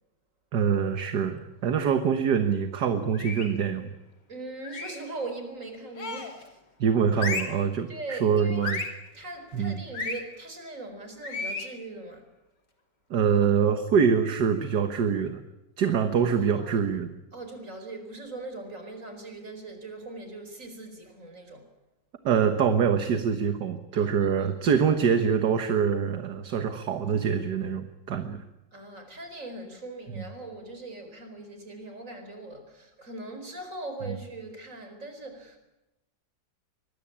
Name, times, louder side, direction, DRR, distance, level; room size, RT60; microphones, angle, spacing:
voice 1, 0.5-4.0 6.8-8.8 9.5-9.8 13.1-15.4 15.8-17.1 22.2-28.4 30.2-30.3 34.1-34.2, right 7 dB, 70° right, 1.9 m, -25 dB
sound 1, 3.1-3.6 4.6-5.1 6.0-6.4 7.1-7.6 8.6-9.0 9.9-10.2 11.2-11.7, left 3 dB, 75° left, 3.8 m, -33 dB
voice 2, 4.3-6.6 7.9-8.6 9.1-12.3 16.6-16.7 17.3-21.7 23.9-24.3 24.6-24.9 28.7-35.6, right 2 dB, 45° right, 4.9 m, -40 dB
24.0 x 21.0 x 8.7 m
omnidirectional pair, 1.9 m